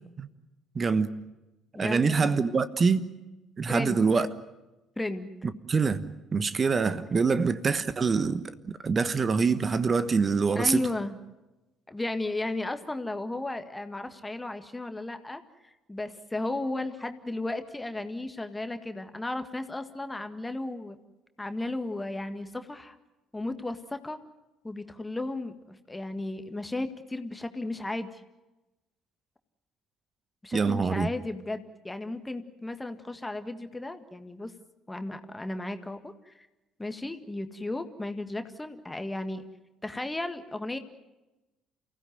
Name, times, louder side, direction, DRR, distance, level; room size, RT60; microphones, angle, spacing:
voice 1, 0.7-1.1 1.8-3.1 3.6-4.3 5.7-6.0 6.3-10.9 30.5-31.1, right 5 dB, 35° right, 1.2 m, -25 dB
voice 2, 1.7-2.3 3.7-4.0 5.0-5.3 10.6-11.2 11.9-21.0 21.4-23.0 23.3-24.2 24.6-28.2 30.4-34.5 34.9-36.5 36.8-39.4 39.8-40.8, left 2 dB, 15° left, 1.8 m, -34 dB
29.0 x 16.5 x 9.3 m
figure-of-eight pair, 50°, 0 cm